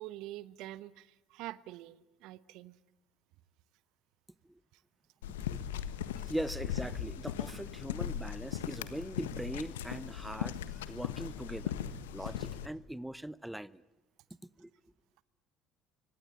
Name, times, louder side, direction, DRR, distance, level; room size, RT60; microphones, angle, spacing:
voice 1, 0.0-2.8, right 16 dB, 65° right, 0.9 m, -45 dB
sound 1, 5.2-12.7, left 10 dB, 80° left, 1.4 m, -38 dB
voice 2, 6.2-11.7 12.1-13.8 14.6-14.7, right 1 dB, 5° right, 0.9 m, -41 dB
26.0 x 24.5 x 8.7 m
hypercardioid pair, 60°, 0 cm